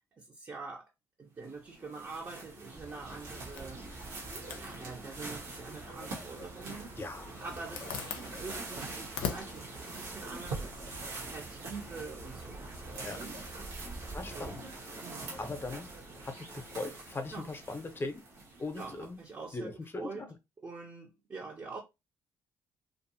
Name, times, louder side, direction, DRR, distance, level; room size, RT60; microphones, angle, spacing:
voice 1, 0.2-0.9 1.2-3.8 4.6-7.0 7.4-13.4 14.2-14.5 15.0-15.3 17.3-17.5 18.8-20.3 20.6-21.8, right 4 dB, 35° right, 0.8 m, -45 dB
sound 1, 1.4-19.2, right 2 dB, 90° right, 1.0 m, -44 dB
sound 2, 2.7-14.5, right 3 dB, 50° right, 1.1 m, -51 dB
Zipper (clothing), 2.9-11.0, left 7 dB, 85° left, 0.5 m, -45 dB
voice 2, 7.0-7.3 13.0-13.2 14.1-14.6 15.4-15.9 16.2-18.2 18.6-19.2 19.5-20.3, left 3 dB, 25° left, 0.8 m, -39 dB
2.6 x 2.5 x 2.6 m
supercardioid pair, 60°, 8 cm